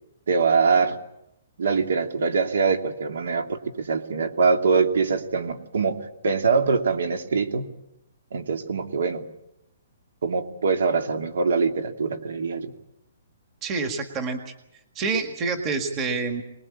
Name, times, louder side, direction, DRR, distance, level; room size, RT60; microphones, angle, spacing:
voice 1, 0.3-1.0 1.6-6.0 6.2-7.7 8.3-9.2 10.2-12.7, right 5 dB, 70° right, 6 dB, 2.7 m, -23 dB
voice 2, 13.6-14.4 15.0-16.4, right 4 dB, 15° right, 5 dB, 1.7 m, -27 dB
25.5 x 20.5 x 8.7 m, 0.84 s
hypercardioid pair, 180°, 0 cm